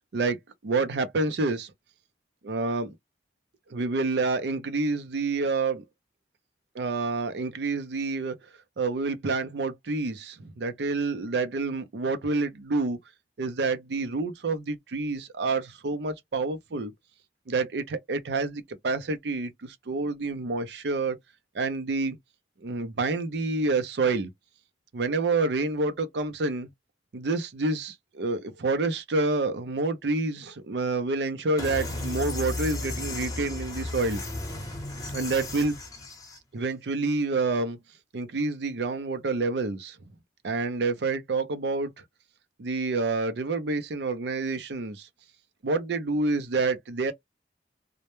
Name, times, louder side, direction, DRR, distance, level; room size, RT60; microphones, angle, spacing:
voice 1, 0.6-1.7 2.5-2.9 3.7-5.8 6.8-8.4 8.8-13.0 13.4-16.9 17.5-21.2 21.5-22.2 22.6-24.3 24.9-26.7 27.1-34.2 35.1-35.8 36.5-37.8 38.1-40.0 40.4-41.9 42.6-45.1 45.6-47.1, right 3 dB, 75° right, 0.5 m, -28 dB
sound 1, 31.6-36.4, left 2 dB, 20° left, 0.7 m, -34 dB
2.1 x 2.1 x 2.9 m
head